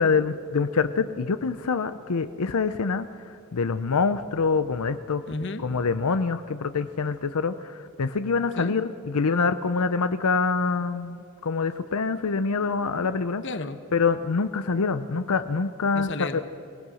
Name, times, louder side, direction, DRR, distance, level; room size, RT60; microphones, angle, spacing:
voice 1, 0.0-5.2 5.6-13.4 13.9-16.4, left 4 dB, 90° left, 11 dB, 0.7 m, -25 dB
voice 2, 5.2-5.6 8.6-8.8 13.4-13.8 15.9-16.4, left 2 dB, 55° left, 10 dB, 1.1 m, -34 dB
24.0 x 18.5 x 6.3 m, 2.6 s
head